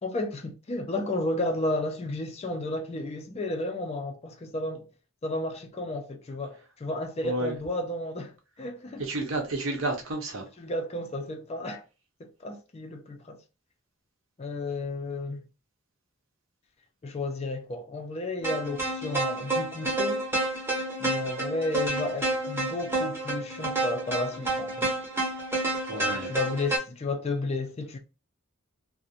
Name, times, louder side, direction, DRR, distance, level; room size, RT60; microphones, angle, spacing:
voice 1, 0.0-4.9 5.2-9.0 10.6-11.8 12.2-13.4 14.4-15.4 17.0-20.3 21.0-24.9 25.9-28.0, left 2 dB, 30° left, 0.4 m, -33 dB
voice 2, 7.2-7.5 9.0-10.5 25.8-26.3, right 2 dB, 75° right, 0.8 m, -31 dB
sound 1, 18.4-26.8, right 2 dB, 10° right, 0.7 m, -29 dB
2.4 x 2.0 x 2.7 m
head